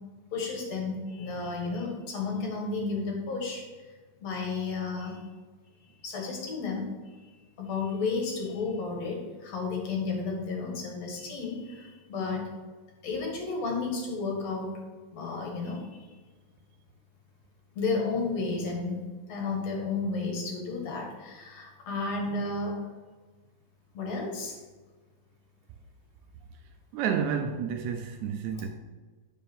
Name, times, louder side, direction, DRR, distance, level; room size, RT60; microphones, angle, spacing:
voice 1, 0.3-3.6 4.2-5.2 6.0-6.9 7.6-12.4 13.0-14.8 15.1-16.1 17.8-19.0 19.3-22.9 23.9-24.6 28.5-28.7, left 4 dB, 60° left, 2.7 m, -32 dB
voice 2, 26.9-28.7, right 7 dB, 80° right, 1.8 m, -30 dB
9.0 x 5.3 x 5.5 m
omnidirectional pair, 3.5 m